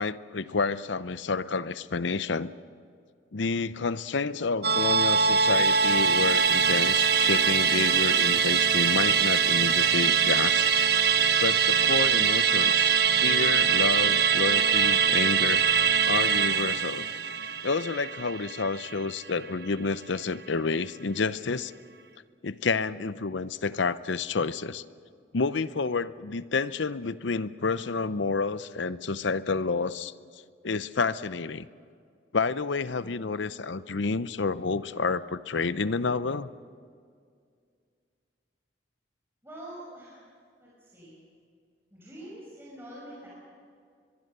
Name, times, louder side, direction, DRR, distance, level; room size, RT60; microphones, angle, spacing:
voice 1, 0.0-2.5 3.3-10.7 11.4-12.9 13.2-15.6 16.1-17.0 17.6-21.7 22.4-24.8 25.3-30.1 30.6-31.7 32.3-36.5, left 4 dB, 70° left, 15 dB, 0.7 m, -29 dB
Musical instrument, 4.6-19.3 19.6-19.7, right 6 dB, 55° right, 1.0 m, -23 dB
voice 2, 39.4-40.3 40.6-41.2 41.9-43.3, right 1 dB, 10° right, -7 dB, 6.0 m, -45 dB
23.5 x 22.5 x 6.8 m, 2.2 s
head